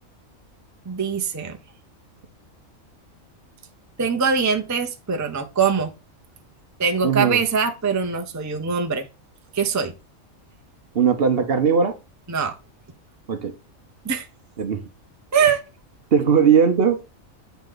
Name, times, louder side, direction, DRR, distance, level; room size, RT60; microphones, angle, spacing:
voice 1, 0.9-1.6 4.0-5.9 6.8-9.1 9.5-9.9 12.3-12.5 14.0-14.3 15.3-15.6, right 6 dB, 15° right, 0.6 m, -22 dB
voice 2, 7.0-7.4 10.9-11.9 13.3-13.5 14.6-14.8 16.1-17.0, right 7 dB, 50° right, 0.9 m, -18 dB
8.0 x 4.1 x 3.8 m
omnidirectional pair, 1.4 m